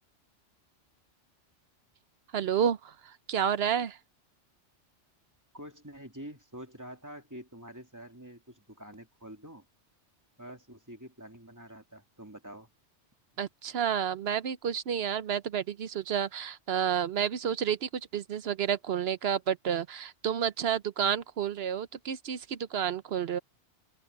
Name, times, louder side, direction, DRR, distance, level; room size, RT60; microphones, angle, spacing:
voice 1, 2.3-4.0 13.4-23.4, right 8 dB, 65° right, 0.9 m, -30 dB
voice 2, 5.5-9.7 10.4-12.7, equal, 15° right, 2.6 m, -47 dB
open air
omnidirectional pair, 1.2 m